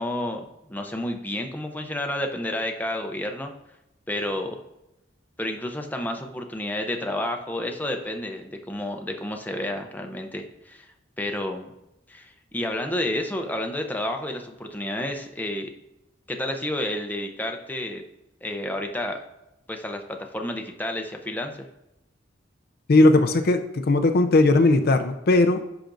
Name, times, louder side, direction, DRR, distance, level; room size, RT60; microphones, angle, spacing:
voice 1, 0.0-3.5 4.1-4.6 5.4-10.9 11.2-11.7 12.1-15.7 16.3-18.0 18.4-19.2 19.7-21.5, left 1 dB, 10° left, 3 dB, 0.6 m, -30 dB
voice 2, 22.9-23.6 23.9-25.6, left 2 dB, 55° left, 7 dB, 0.5 m, -18 dB
10.0 x 5.9 x 2.6 m, 0.91 s
head